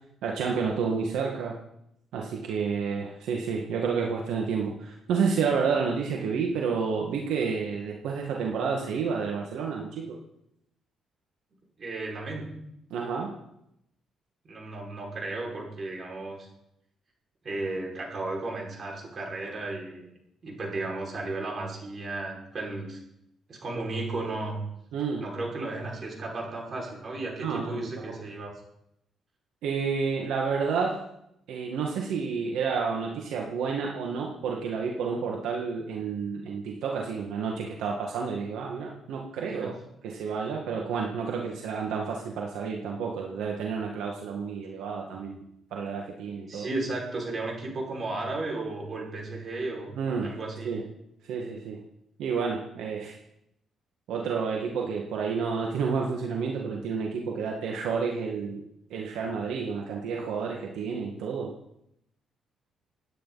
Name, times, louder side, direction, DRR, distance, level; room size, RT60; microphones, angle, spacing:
voice 1, 0.2-1.6 2.1-10.2 12.9-13.3 24.9-25.2 27.4-27.8 29.6-31.0 31.5-39.7 40.0-45.4 45.7-46.7 49.9-50.4 50.6-50.8 51.2-51.8 52.2-53.2 54.1-58.6 58.9-61.5, right 5 dB, 85° right, 0 dB, 1.8 m, -30 dB
voice 2, 11.8-12.5 14.4-16.5 17.4-20.1 20.4-23.0 23.5-24.6 25.2-28.5 39.5-39.7 46.5-49.9 50.2-50.8, right 2 dB, 45° right, -1 dB, 5.6 m, -34 dB
27.5 x 9.6 x 4.1 m, 0.80 s
cardioid pair, 90°, 0 cm